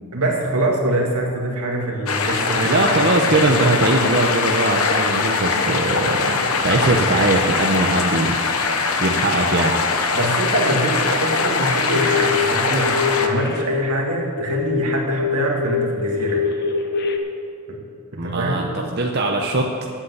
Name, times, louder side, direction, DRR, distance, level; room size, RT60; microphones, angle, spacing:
voice 1, 0.1-3.1 3.4-3.5 10.1-16.5 17.7-17.8 18.2-18.6, right 1 dB, 85° right, 0 dB, 2.0 m, -24 dB
sound 1, 2.1-13.3, left 4 dB, 75° left, 1.0 m, -21 dB
voice 2, 2.6-6.3 6.6-8.3 9.0-9.7 18.2-19.9, right 2 dB, 45° right, 1 dB, 0.7 m, -20 dB
sound 2, 11.9-12.5 12.8-17.2, left 6 dB, 45° left, 0.8 m, -23 dB
8.5 x 8.2 x 8.0 m, 2.4 s
head